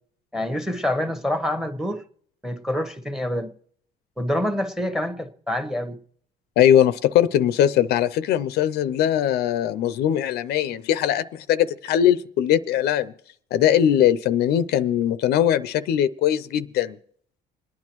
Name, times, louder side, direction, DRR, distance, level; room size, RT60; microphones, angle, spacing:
voice 1, 0.3-2.0 2.4-3.5 4.2-6.0, left 1 dB, 5° right, 1.0 m, -26 dB
voice 2, 6.6-13.1 13.5-17.0, left 10 dB, 75° left, 0.5 m, -20 dB
27.5 x 9.7 x 3.0 m
cardioid pair, 110°, 17 cm